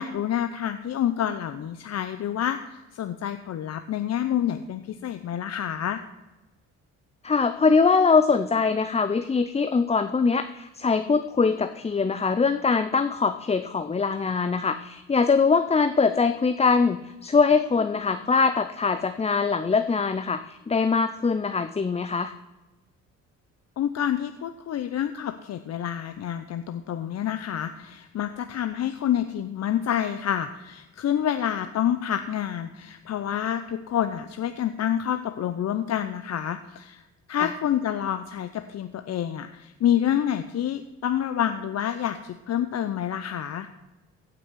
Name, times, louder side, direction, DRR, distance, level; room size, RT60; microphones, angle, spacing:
voice 1, 0.0-6.0 23.8-43.7, left 10 dB, 60° left, 9 dB, 0.7 m, -28 dB
voice 2, 7.2-22.3 37.4-37.5, left 5 dB, 20° left, 10 dB, 0.6 m, -22 dB
15.5 x 6.1 x 6.3 m, 1.1 s
cardioid pair, 90°, 30 cm